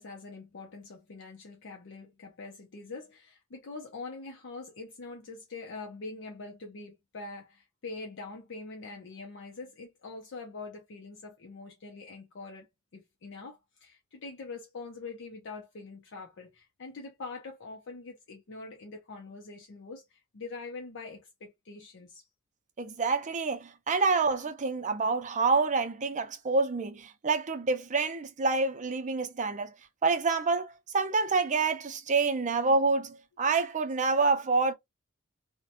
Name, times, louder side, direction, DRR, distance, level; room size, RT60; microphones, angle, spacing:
voice 1, 0.0-12.7 12.9-22.3, left 3 dB, 60° left, 0.6 m, -44 dB
voice 2, 22.8-29.7 30.0-34.7, right 4 dB, 35° right, 0.5 m, -27 dB
2.7 x 2.1 x 2.5 m
head